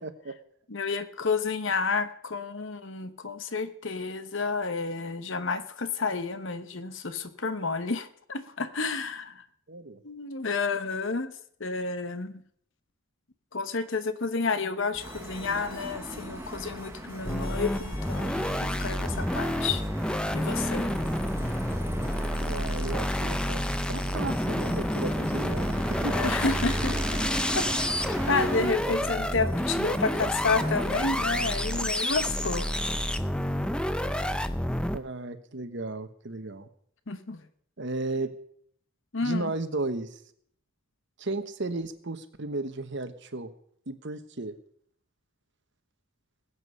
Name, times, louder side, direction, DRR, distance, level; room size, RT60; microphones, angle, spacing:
voice 1, 0.0-0.3 9.7-10.0 22.4-23.6 23.9-26.3 34.9-36.7 37.8-38.3 39.2-40.2 41.2-43.5 43.9-44.5, right 2 dB, 50° right, 10 dB, 1.1 m, -34 dB
voice 2, 0.7-9.4 10.0-11.3 11.6-12.4 13.5-19.8 20.3-20.9 26.0-27.2 27.5-27.8 28.3-32.7 37.1-37.4 39.1-39.5, left 4 dB, 55° left, 11 dB, 0.9 m, -30 dB
sound 1, 14.9-31.3, left 2 dB, 40° left, 2.1 m, -48 dB
sound 2, 15.0-28.7, right 1 dB, 10° right, 1.1 m, -37 dB
sound 3, 17.2-35.0, equal, 5° left, 0.5 m, -29 dB
20.5 x 8.2 x 5.5 m, 0.65 s
head